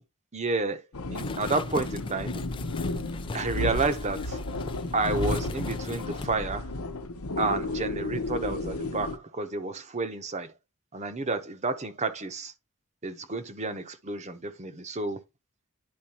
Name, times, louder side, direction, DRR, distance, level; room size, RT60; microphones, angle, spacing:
voice 1, 0.3-0.8 1.1-2.4 3.3-4.4 4.9-6.7 7.4-10.5 10.9-12.5 13.0-15.2, right 3 dB, 30° right, 0.8 m, -30 dB
sound 1, 0.9-9.2, left 2 dB, 90° left, 0.9 m, -33 dB
sound 2, 1.1-6.3, left 4 dB, 25° left, 0.3 m, -42 dB
10.5 x 4.3 x 2.9 m
head